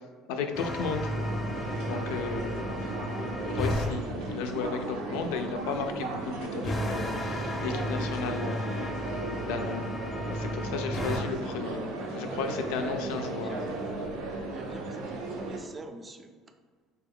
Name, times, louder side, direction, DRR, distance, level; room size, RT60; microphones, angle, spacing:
voice 1, 0.3-1.1 1.9-2.7 3.4-8.7 9.4-9.9 10.3-11.8 12.1-13.5, left 5 dB, 85° left, 5 dB, 0.4 m, -34 dB
sound 1, 0.5-3.9 6.6-11.2, left 1 dB, 25° left, 0.6 m, -33 dB
sound 2, 1.1-15.6, right 3 dB, 85° right, 0.6 m, -36 dB
voice 2, 14.5-16.3, right 2 dB, 25° right, 6 dB, 0.4 m, -45 dB
4.1 x 2.3 x 3.5 m, 1.5 s
supercardioid pair, 100°, 0 cm